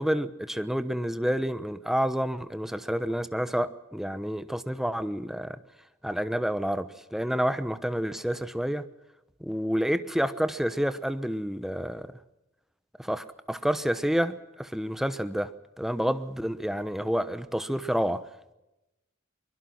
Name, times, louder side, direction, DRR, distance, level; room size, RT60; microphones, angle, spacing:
voice 1, 0.0-5.6 6.0-8.9 9.4-12.1 13.0-15.5 15.8-18.2, equal, ahead, 1.0 m, -29 dB
23.5 x 22.0 x 6.0 m
head